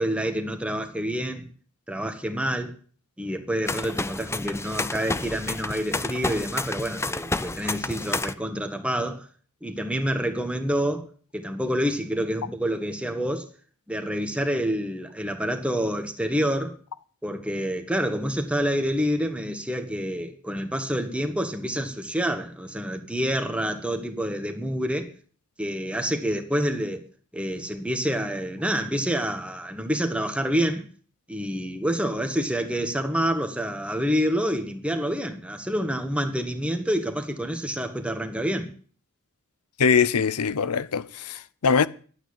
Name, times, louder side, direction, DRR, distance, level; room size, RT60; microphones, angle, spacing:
voice 1, 0.0-1.4 1.9-2.7 3.2-9.3 9.6-13.5 13.9-16.8 17.2-25.1 25.6-27.0 27.3-30.9 31.3-38.7, equal, 5° right, 1.8 m, -27 dB
sound 1, 3.7-8.3, left 3 dB, 10° left, 0.5 m, -30 dB
voice 2, 39.8-41.9, left 6 dB, 85° left, 0.7 m, -22 dB
12.0 x 9.0 x 8.7 m
head